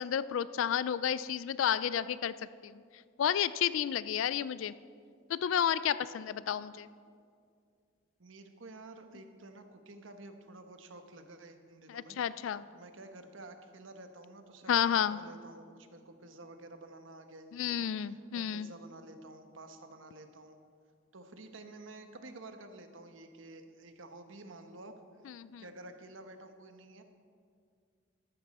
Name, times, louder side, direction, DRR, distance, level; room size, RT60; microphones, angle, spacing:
voice 1, 0.0-2.3 2.6-2.8 3.2-4.7 5.3-6.9 11.9-12.6 14.7-15.2 17.5-18.7 25.3-25.6, left 9 dB, 80° left, 16 dB, 0.3 m, -31 dB
voice 2, 8.2-12.2 12.7-14.8 15.1-20.6 21.1-24.9 25.6-27.0, right 2 dB, 75° right, 7 dB, 1.1 m, -51 dB
14.0 x 11.5 x 4.2 m, 2.2 s
head